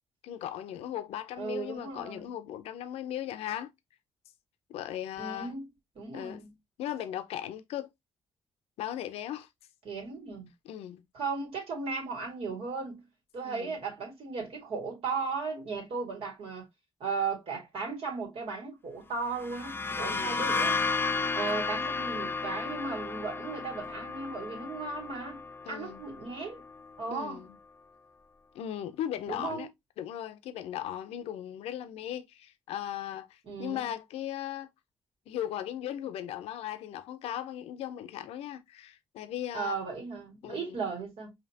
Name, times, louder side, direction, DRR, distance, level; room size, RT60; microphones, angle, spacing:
voice 1, 0.2-3.7 4.7-5.5 6.1-6.4 6.8-7.9 8.8-9.5 10.7-11.0 13.5-13.7 20.0-20.3 25.7-26.0 27.1-27.6 28.5-29.7 30.0-34.7 35.3-39.7 40.4-40.8, left 11 dB, 85° left, 0.5 m, -37 dB
voice 2, 1.4-2.3 5.2-5.7 6.0-6.5 9.8-10.5 11.1-13.0 13.3-16.7 17.0-20.8 21.3-25.4 25.7-26.6 27.0-27.4 29.3-29.7 33.4-33.9 39.5-41.3, right 4 dB, 70° right, 2.1 m, -36 dB
sound 1, 19.3-26.9, left 4 dB, 20° left, 0.4 m, -33 dB
5.1 x 2.8 x 2.7 m
supercardioid pair, 65°, 10 cm